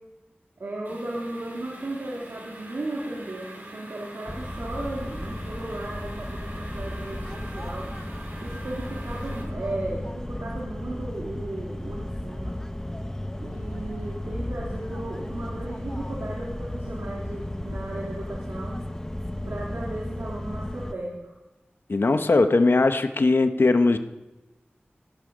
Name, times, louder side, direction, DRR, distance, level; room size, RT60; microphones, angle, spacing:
voice 1, 0.6-7.9 8.4-12.6 13.4-18.8 19.4-21.3, right 1 dB, 90° right, -4 dB, 2.7 m, -35 dB
sound 1, 0.8-9.4, right 1 dB, 60° right, 4.2 m, -44 dB
sound 2, 4.3-20.9, left 1 dB, 15° left, 0.7 m, -34 dB
voice 2, 21.9-24.0, left 3 dB, 65° left, 9 dB, 0.9 m, -20 dB
18.0 x 11.5 x 5.1 m, 1.1 s
wide cardioid pair, 75°, 4 cm